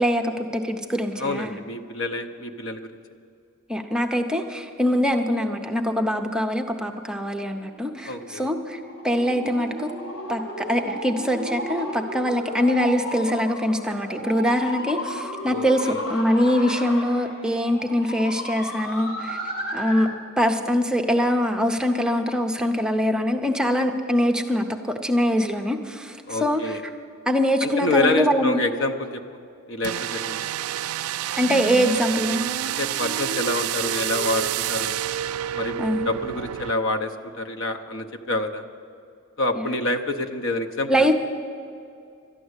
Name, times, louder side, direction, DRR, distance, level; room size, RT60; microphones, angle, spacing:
voice 1, 0.0-1.6 3.7-9.9 10.3-19.4 19.7-20.1 20.4-26.8 27.3-28.6 31.4-32.4 35.8-36.1 39.6-39.7 40.9-41.1, equal, 5° right, 3 dB, 0.6 m, -23 dB
voice 2, 1.2-2.9 8.1-8.5 15.4-16.0 26.3-26.8 27.6-29.2 29.7-30.5 32.6-35.0 35.5-38.6 39.4-41.1, left 2 dB, 60° left, 7 dB, 0.8 m, -27 dB
sound 1, 7.5-20.2, equal, 80° left, 3.1 m, -33 dB
sound 2, 29.8-36.7, right 11 dB, 90° right, 0.3 m, -28 dB
12.5 x 10.5 x 8.0 m, 2.4 s
head